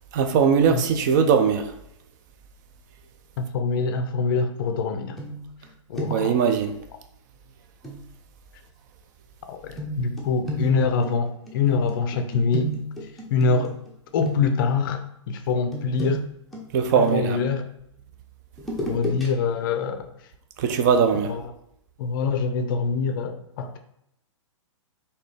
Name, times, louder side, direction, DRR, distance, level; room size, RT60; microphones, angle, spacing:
voice 1, 0.1-1.7 6.1-6.7 16.7-17.4 20.6-21.3, right 6 dB, 40° right, 7 dB, 0.4 m, -20 dB
voice 2, 3.4-5.2 5.9-6.4 9.5-12.7 13.3-13.7 14.1-16.3 17.0-17.6 18.9-20.1 21.2-21.4 22.0-23.8, left 5 dB, 45° left, 7 dB, 0.5 m, -24 dB
sound 1, 5.2-5.7 5.9-6.4 7.8-8.0 9.8-13.9 14.2-14.8 15.7-17.5 18.6-19.3 19.7-19.8, right 1 dB, ahead, 0.7 m, -33 dB
3.9 x 2.7 x 3.2 m, 0.78 s
figure-of-eight pair, 115°, 16 cm